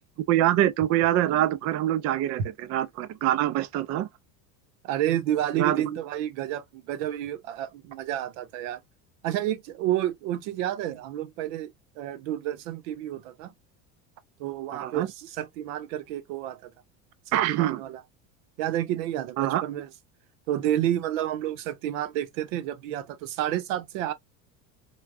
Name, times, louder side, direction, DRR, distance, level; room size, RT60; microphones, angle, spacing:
voice 1, 0.3-4.1 5.6-5.8 14.7-15.1 17.3-17.8 19.4-19.6, right 13 dB, 40° right, 0.4 m, -24 dB
voice 2, 4.8-8.8 9.2-13.5 14.4-16.7 17.3-18.0 18.6-19.9 20.5-24.1, right 12 dB, 75° right, 0.8 m, -30 dB
3.3 x 2.3 x 2.4 m
supercardioid pair, 105°, 40 cm